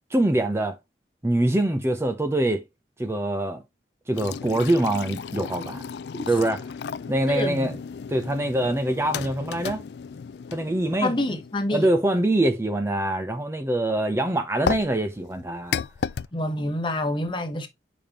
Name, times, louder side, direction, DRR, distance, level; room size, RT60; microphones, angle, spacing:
voice 1, 0.1-0.8 1.2-2.6 3.0-3.6 4.1-5.8 6.3-6.6 7.1-7.7 8.1-9.8 10.5-11.1 11.7-15.8, right 1 dB, 15° right, 0.6 m, -24 dB
sound 1, 4.1-11.8 14.6-16.3, left 6 dB, 70° left, 0.3 m, -34 dB
voice 2, 7.3-7.8 11.0-11.9 16.3-17.7, left 1 dB, 25° left, 1.0 m, -27 dB
6.9 x 5.2 x 2.9 m
head